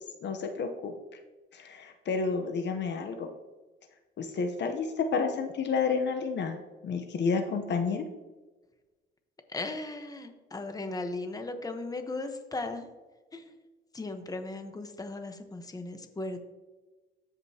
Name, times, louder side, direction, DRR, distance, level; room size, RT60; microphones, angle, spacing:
voice 1, 0.2-0.9 1.5-3.3 4.2-6.6 6.8-8.0, left 5 dB, 60° left, 6 dB, 0.9 m, -30 dB
voice 2, 9.5-12.9 13.3-13.5 13.9-16.5, left 2 dB, 20° left, 6 dB, 1.1 m, -37 dB
14.0 x 5.2 x 2.9 m, 1.2 s
cardioid pair, 90°, 20 cm